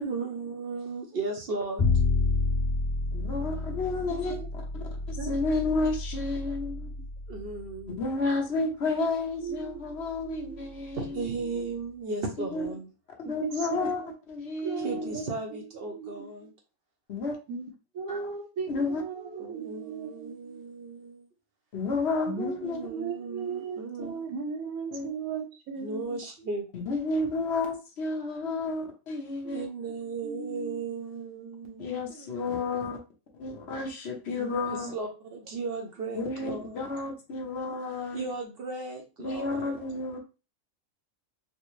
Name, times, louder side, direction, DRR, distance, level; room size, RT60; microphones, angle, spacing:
voice 1, 0.0-1.9 7.3-8.0 8.6-8.7 10.9-12.9 14.8-16.5 19.2-21.3 22.6-24.2 25.8-26.7 29.5-32.3 34.3-36.9 38.1-39.8, right 3 dB, 60° right, 0.7 m, -36 dB
Bowed string instrument, 1.8-8.0, left 3 dB, 35° left, 1.5 m, -30 dB
voice 2, 3.1-6.9 8.0-11.2 12.4-12.7 13.2-14.0 14.3-15.1 17.1-17.3 18.1-18.3 18.7-19.0 21.7-22.9 24.0-24.1 24.9-25.1 26.7-29.7 31.8-33.0 33.3-34.9 36.1-38.2 39.2-40.2, left 3 dB, 55° left, 1.0 m, -31 dB
voice 3, 5.2-5.9 8.9-9.1 9.4-10.7 11.1-11.7 13.4-14.1 14.6-15.4 15.9-16.5 17.5-17.7 17.9-20.6 22.3-26.2 28.4-28.6 29.4-29.6 30.2-30.8, right 6 dB, 90° right, 1.2 m, -37 dB
4.3 x 2.0 x 3.1 m
omnidirectional pair, 1.4 m